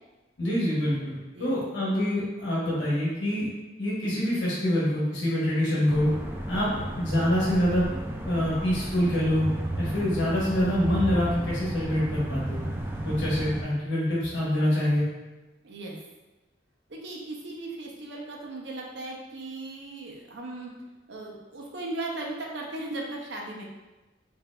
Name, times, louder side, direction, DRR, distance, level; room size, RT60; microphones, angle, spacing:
voice 1, 0.4-3.5 3.8-6.1 6.5-6.7 7.0-7.9 8.2-9.5 9.8-12.6 13.0-15.0, equal, 90° left, -7 dB, 1.1 m, -25 dB
voice 2, 1.3-1.8 15.6-16.0 16.9-20.7 21.1-23.6, right 2 dB, 70° right, -1 dB, 0.7 m, -37 dB
sound 1, 5.9-13.6, right 1 dB, 10° right, 0.3 m, -33 dB
4.7 x 2.6 x 2.2 m, 1.1 s
head